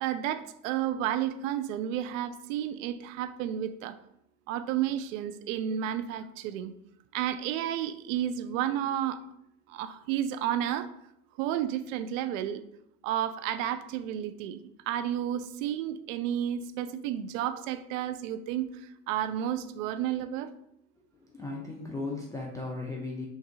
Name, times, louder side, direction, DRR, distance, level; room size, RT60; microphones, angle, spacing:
voice 1, 0.0-4.0 4.5-6.7 7.1-9.2 9.7-10.9 11.4-12.6 13.0-14.6 14.9-18.7 19.1-20.5, right 10 dB, 60° right, 12 dB, 0.5 m, -31 dB
voice 2, 21.1-23.3, left 3 dB, 10° left, -3 dB, 0.4 m, -36 dB
5.8 x 2.6 x 2.6 m, 0.78 s
hypercardioid pair, 75°, 46 cm